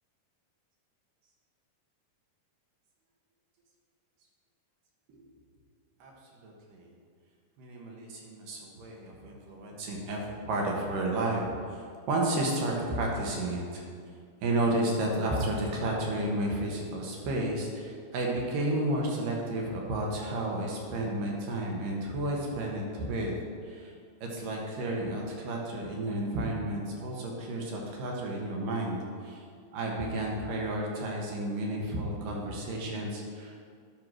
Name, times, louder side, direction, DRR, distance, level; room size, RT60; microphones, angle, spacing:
voice 1, 6.4-6.9 7.6-11.5 11.7-13.8 14.4-23.3 23.6-23.9 24.2-29.0 29.2-29.4 29.7-33.5, right 1 dB, 70° right, -1 dB, 2.8 m, -32 dB
10.0 x 4.6 x 6.2 m, 2.2 s
omnidirectional pair, 4.2 m